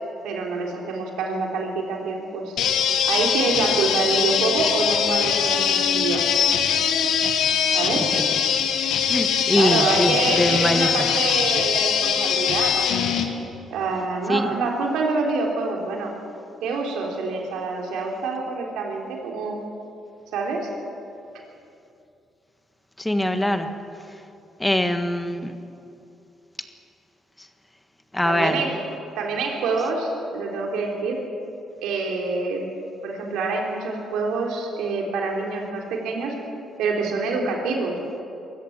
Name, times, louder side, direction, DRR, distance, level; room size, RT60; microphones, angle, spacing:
voice 1, 0.2-2.6 3.1-6.2 7.7-8.1 9.5-13.2 13.7-16.1 16.6-19.6 20.3-20.7 28.2-28.8 29.2-31.2 31.8-32.7 33.0-36.4 36.8-38.0, right 4 dB, 90° right, 0 dB, 3.7 m, -26 dB
sound 1, 2.6-13.2, left 8 dB, 80° left, 1.8 m, -22 dB
voice 2, 7.7-8.4 9.1-11.1 14.3-14.5 23.0-23.7 24.6-25.5 27.4-27.5 28.1-28.6, left 1 dB, 10° left, 7 dB, 1.6 m, -23 dB
22.5 x 14.0 x 8.8 m, 2.7 s
cardioid pair, 90°, 0 cm